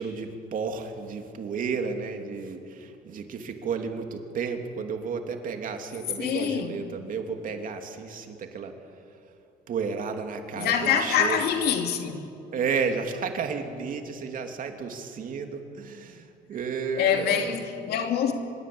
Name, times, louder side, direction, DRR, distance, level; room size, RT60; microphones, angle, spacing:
voice 1, 0.0-8.7 9.7-11.4 12.5-17.5, right 5 dB, 55° right, 2.9 m, -32 dB
voice 2, 6.2-6.9 10.6-12.2 17.0-18.3, left 8 dB, 70° left, 2.7 m, -25 dB
25.0 x 21.5 x 8.7 m
cardioid pair, 110°, 17 cm